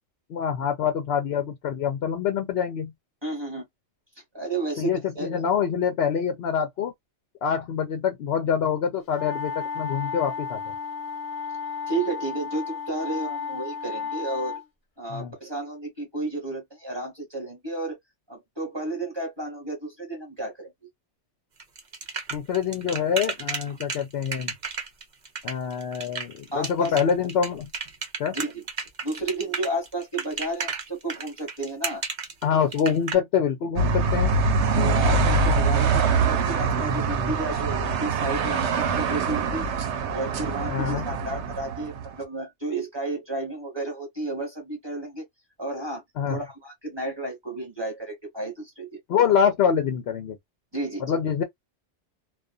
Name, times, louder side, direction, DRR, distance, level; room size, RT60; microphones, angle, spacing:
voice 1, 0.3-2.9 4.8-6.9 7.4-10.6 15.1-15.3 22.3-24.5 25.4-27.7 28.2-28.4 32.4-34.4 40.7-41.0 46.2-46.4 49.1-50.4 51.0-51.4, left 7 dB, 65° left, 0.8 m, -25 dB
voice 2, 3.2-3.6 4.3-5.4 11.9-14.6 15.0-18.0 18.3-20.7 26.5-27.0 28.3-28.6 29.0-32.0 34.7-39.7 40.1-45.2 45.6-46.0 46.3-49.3 50.7-51.0, right 2 dB, 25° right, 1.3 m, -32 dB
sound 1, 9.1-14.6, left 5 dB, 20° left, 0.9 m, -33 dB
sound 2, 21.6-33.1, right 5 dB, 45° right, 0.8 m, -32 dB
sound 3, 33.8-42.2, right 4 dB, 80° right, 0.9 m, -24 dB
2.4 x 2.3 x 2.3 m
omnidirectional pair, 1.2 m